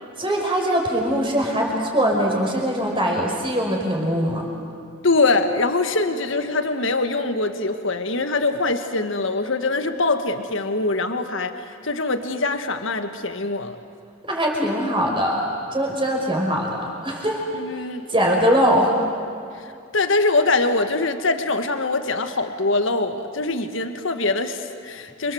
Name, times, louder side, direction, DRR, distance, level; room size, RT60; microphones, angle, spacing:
voice 1, 0.2-4.5 14.2-17.4 18.1-18.9, equal, 25° right, 0 dB, 5.2 m, -22 dB
voice 2, 5.0-11.6 11.8-13.8 17.5-18.0 19.9-25.3, left 3 dB, 70° left, 8 dB, 1.7 m, -23 dB
29.0 x 25.5 x 7.9 m, 2.5 s
head